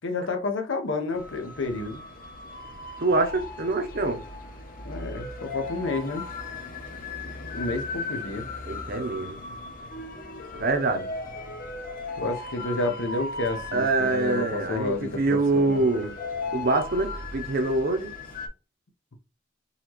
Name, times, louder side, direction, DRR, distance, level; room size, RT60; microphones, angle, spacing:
voice 1, 0.0-2.0 4.8-6.3 7.5-8.5 12.2-15.8, left 2 dB, 80° left, 0.8 m, -30 dB
sound 1, 1.1-18.5, left 3 dB, 45° left, 0.8 m, -37 dB
voice 2, 3.0-4.2 8.7-9.4 10.5-11.1 13.7-16.1 16.5-18.1, right 2 dB, 50° right, 0.7 m, -25 dB
4.0 x 3.0 x 2.9 m
head